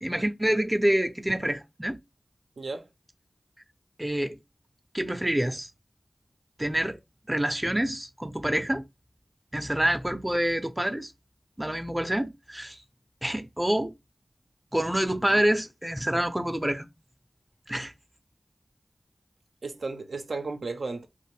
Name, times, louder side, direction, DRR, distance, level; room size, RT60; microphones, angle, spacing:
voice 1, 0.0-2.0 4.0-4.4 4.9-5.7 6.6-7.0 7.3-8.8 9.5-11.1 11.6-12.8 13.2-13.9 14.7-16.9 17.7-17.9, right 1 dB, 15° right, 0.4 m, -27 dB
voice 2, 2.6-2.9 19.6-21.1, right 3 dB, 85° right, 0.4 m, -34 dB
2.9 x 2.5 x 3.2 m
cardioid pair, 45°, 0 cm